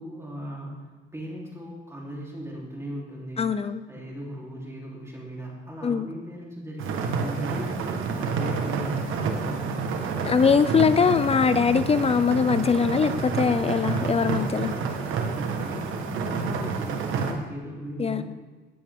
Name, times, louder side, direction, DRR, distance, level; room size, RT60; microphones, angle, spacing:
voice 1, 0.0-3.5 3.9-9.7 15.3-18.2, equal, 15° right, -4 dB, 3.6 m, -38 dB
voice 2, 3.4-3.8 5.8-6.1 10.2-14.7 18.0-18.2, left 6 dB, 30° left, 13 dB, 0.5 m, -22 dB
sound 1, 6.8-17.3, right 5 dB, 85° right, 1.4 m, -29 dB
14.5 x 9.0 x 3.7 m, 1.3 s
cardioid pair, 90°, 20 cm